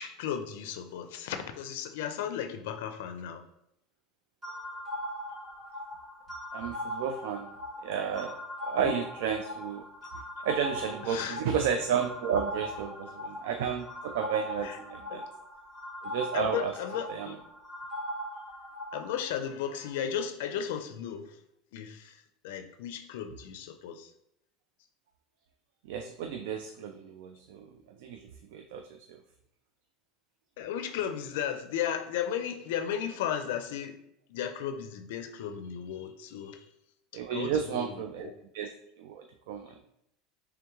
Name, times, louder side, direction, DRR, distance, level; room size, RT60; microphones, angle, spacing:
voice 1, 0.0-3.5 8.8-8.9 11.1-11.4 14.6-14.8 15.1-15.2 16.3-17.4 18.9-21.3 21.7-22.2 22.4-24.1 30.6-34.0 34.3-36.6 37.3-37.9 38.2-38.3, left 9 dB, 85° left, 7 dB, 0.4 m, -35 dB
sound 1, 4.4-19.2, equal, 15° right, 1.1 m, -40 dB
voice 2, 6.5-7.5 7.8-8.3 8.6-9.8 10.4-15.2 16.0-16.7 17.1-17.4 25.9-27.7 28.0-29.2 37.1-38.3 38.5-38.7 39.0-39.8, right 7 dB, 85° right, 5 dB, 0.3 m, -32 dB
3.5 x 3.4 x 3.0 m, 0.78 s
supercardioid pair, 160°, 0 cm